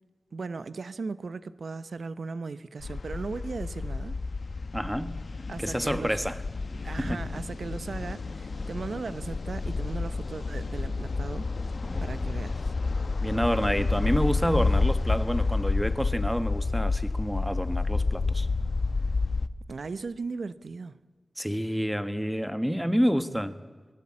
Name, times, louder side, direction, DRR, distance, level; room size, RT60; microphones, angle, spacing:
voice 1, 0.3-4.2 5.5-6.2 6.8-11.5 12.0-12.7 19.7-21.0, right 4 dB, 80° right, 0.8 m, -37 dB
sound 1, 2.8-19.5, left 3 dB, 65° left, 1.0 m, -29 dB
voice 2, 4.7-5.2 5.6-6.4 6.8-7.2 11.8-12.3 13.2-18.5 21.4-23.5, equal, 5° right, 1.4 m, -28 dB
24.5 x 21.0 x 8.7 m
wide cardioid pair, 85°, 0 cm